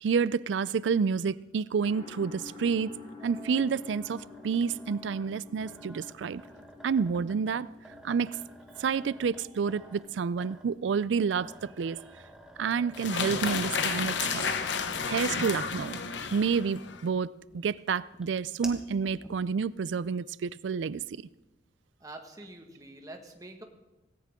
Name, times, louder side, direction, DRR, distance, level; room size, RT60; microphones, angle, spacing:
voice 1, 0.0-2.9 3.2-6.4 6.8-7.7 8.0-8.4 8.8-12.0 12.6-14.5 15.1-16.0 16.3-21.0, right 6 dB, 90° right, 0.4 m, -29 dB
sound 1, 1.8-9.9, left 4 dB, 35° left, 4.9 m, -49 dB
sound 2, 3.2-16.5 17.0-19.7, right 1 dB, 5° right, 1.5 m, -51 dB
sound 3, 12.9-17.0, left 5 dB, 85° left, 1.1 m, -31 dB
voice 2, 22.0-23.6, right 2 dB, 20° right, 1.7 m, -46 dB
18.5 x 17.5 x 3.7 m
head